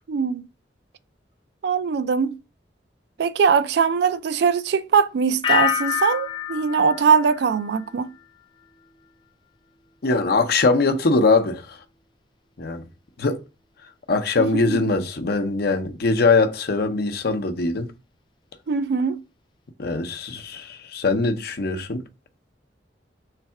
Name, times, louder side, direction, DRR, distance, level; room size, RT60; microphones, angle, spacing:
voice 1, 0.1-0.5 1.6-2.4 3.2-8.1 14.4-14.8 18.7-19.2, right 6 dB, 65° right, 0.4 m, -21 dB
sound 1, 5.4-8.3 8.6-9.1, left 9 dB, 25° left, 0.3 m, -27 dB
voice 2, 10.0-11.8 12.6-12.9 13.2-13.4 14.1-17.9 19.8-22.1, left 3 dB, 60° left, 0.7 m, -22 dB
3.6 x 3.3 x 4.4 m
head